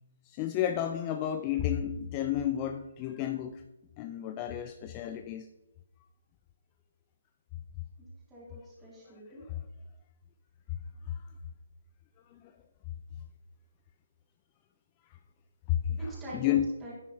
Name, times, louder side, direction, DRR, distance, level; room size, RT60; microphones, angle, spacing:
voice 1, 0.3-3.6 4.0-5.5 9.1-9.6 11.1-11.2 12.3-12.5 15.7-16.7, left 10 dB, 25° left, 7 dB, 0.4 m, -32 dB
voice 2, 8.0-9.4 15.9-16.5 16.8-16.9, equal, 10° right, -8 dB, 2.4 m, -45 dB
10.5 x 6.2 x 2.8 m, 0.96 s
figure-of-eight pair, 145°, 0 cm